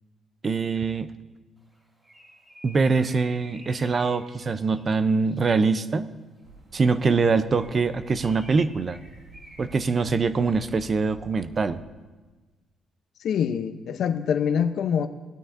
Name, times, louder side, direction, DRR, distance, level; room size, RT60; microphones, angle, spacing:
voice 1, 0.4-1.1 2.6-6.1 6.7-9.0 9.6-11.8, right 4 dB, 40° right, 12 dB, 0.5 m, -23 dB
Bird, 1.7-5.8 7.4-10.9, equal, 20° right, 2.6 m, -52 dB
sound 1, 6.4-11.8, right 2 dB, 75° right, 1.9 m, -50 dB
voice 2, 13.2-15.1, left 7 dB, 70° left, 10 dB, 0.6 m, -25 dB
17.5 x 12.0 x 2.6 m, 1.3 s
cardioid pair, 90°, 0 cm